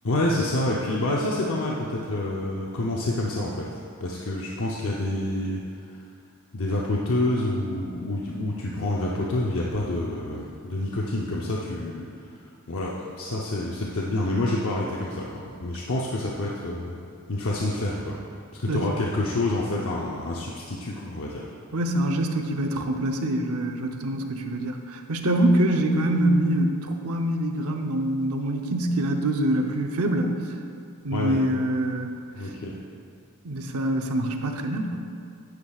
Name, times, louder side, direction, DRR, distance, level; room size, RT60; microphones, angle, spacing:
voice 1, 0.0-5.6 5.9-6.0 6.5-12.1 12.7-17.0 17.3-18.2 18.6-21.4 31.1-31.4 32.3-32.8, left 1 dB, 65° left, -4 dB, 0.8 m, -28 dB
voice 2, 21.7-30.3 31.0-32.2 33.4-35.0, right 1 dB, 70° right, 4 dB, 0.7 m, -25 dB
10.5 x 9.7 x 2.4 m, 2.4 s
head